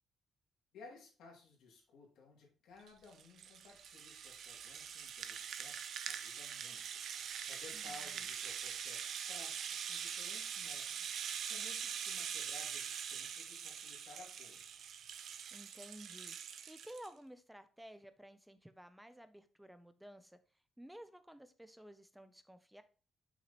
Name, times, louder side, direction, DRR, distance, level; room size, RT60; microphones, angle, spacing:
voice 1, 0.7-14.7, left 4 dB, 85° left, 0 dB, 2.3 m, -58 dB
Rattle (instrument), 2.9-17.1, right 8 dB, 65° right, 0.5 m, -43 dB
voice 2, 7.7-8.3 15.5-22.8, equal, 5° right, 11 dB, 0.4 m, -55 dB
5.9 x 5.9 x 2.9 m, 0.37 s
cardioid pair, 145°, 0 cm